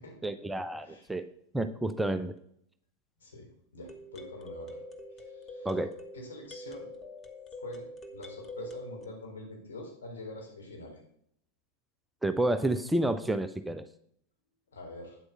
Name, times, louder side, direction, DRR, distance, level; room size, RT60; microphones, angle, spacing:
voice 1, 0.2-2.3 5.6-6.0 12.2-13.9, right 1 dB, 5° right, 9 dB, 0.5 m, -30 dB
sound 1, 1.1-1.2 3.9-9.1, equal, 20° left, 1.3 m, -44 dB
voice 2, 3.7-4.8 5.2-5.8 6.1-6.9 7.6-11.0 14.7-15.2, left 2 dB, 65° left, 0 dB, 3.7 m, -45 dB
9.2 x 8.0 x 5.7 m, 0.70 s
figure-of-eight pair, 90°, 0 cm